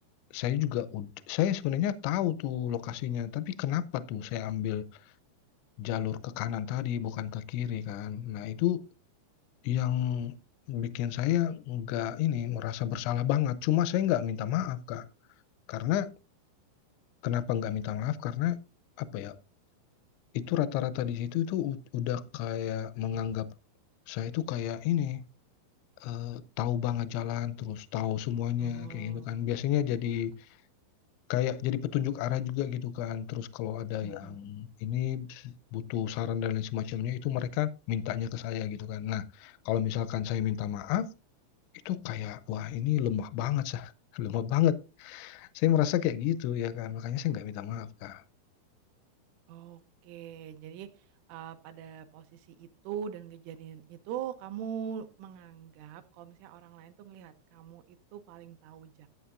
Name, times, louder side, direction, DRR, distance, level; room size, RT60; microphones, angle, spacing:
voice 1, 0.3-4.8 5.8-8.8 9.6-10.4 10.7-15.0 15.7-16.1 17.2-18.6 19.0-19.4 20.3-23.5 24.1-25.2 26.0-30.4 31.3-41.1 41.9-48.2, left 11 dB, 80° left, 2.7 m, -31 dB
voice 2, 28.6-29.4 29.9-30.2 34.0-34.4 49.5-59.1, right 8 dB, 80° right, 3.2 m, -42 dB
14.0 x 8.0 x 2.5 m
omnidirectional pair, 5.8 m